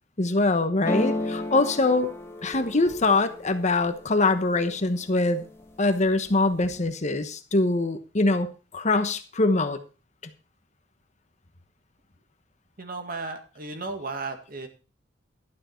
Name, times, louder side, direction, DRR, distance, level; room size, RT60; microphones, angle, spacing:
voice 1, 0.2-2.1 2.4-5.4 5.8-8.5 8.7-9.8, left 2 dB, 40° left, 9 dB, 1.1 m, -23 dB
sound 1, 0.8-4.7 5.2-5.8 6.1-6.8, left 2 dB, 15° left, 1.8 m, -33 dB
voice 2, 12.8-14.7, right 3 dB, 50° right, 6 dB, 1.9 m, -34 dB
11.5 x 9.6 x 4.4 m, 0.34 s
head